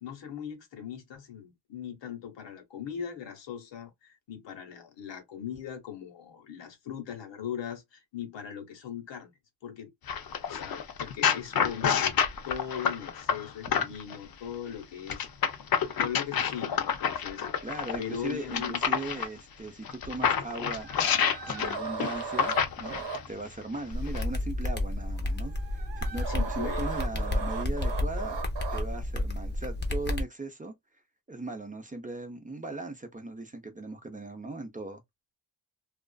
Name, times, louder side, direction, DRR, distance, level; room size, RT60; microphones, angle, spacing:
voice 1, 0.0-9.3 9.6-9.9 10.5-12.2 12.4-15.3 15.9-17.5 18.0-18.8 26.3-26.9, left 9 dB, 85° left, 1.0 m, -39 dB
sound 1, 10.1-14.2 15.1-19.3 19.9-23.3 24.1-24.2, left 7 dB, 55° left, 0.6 m, -28 dB
voice 2, 17.6-20.9 21.4-28.4 28.7-30.7 31.3-35.0, right 2 dB, 20° right, 0.5 m, -38 dB
sound 2, 20.8-29.0, right 5 dB, 85° right, 0.9 m, -39 dB
sound 3, 23.9-30.2, left 1 dB, 25° left, 0.7 m, -31 dB
2.4 x 2.4 x 2.2 m
wide cardioid pair, 110°, 43 cm